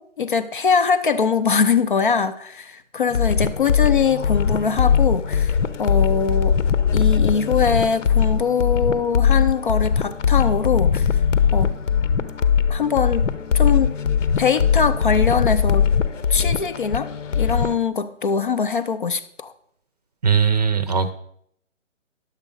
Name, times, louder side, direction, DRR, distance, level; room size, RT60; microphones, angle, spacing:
voice 1, 0.0-6.6 6.9-11.2 11.5-11.7 12.7-13.3 13.5-13.9 14.4-15.9 16.3-17.1 17.4-19.5, left 6 dB, 40° left, 11 dB, 0.5 m, -22 dB
sound 1, 3.1-17.7, left 7 dB, 70° left, 0.9 m, -20 dB
voice 2, 20.2-21.1, right 6 dB, 30° right, 11 dB, 0.6 m, -19 dB
10.0 x 7.4 x 5.3 m, 0.68 s
hypercardioid pair, 160°, 38 cm